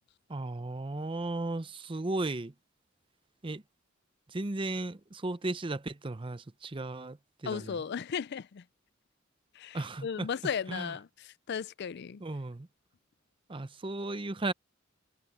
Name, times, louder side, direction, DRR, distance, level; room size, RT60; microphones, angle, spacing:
voice 1, 0.3-2.5 3.4-3.6 4.3-7.8 9.7-10.3 10.7-10.9 12.2-12.7 13.5-14.5, right 2 dB, 25° right, 0.6 m, -35 dB
voice 2, 7.5-8.6 9.5-12.2, left 7 dB, 55° left, 0.4 m, -36 dB
head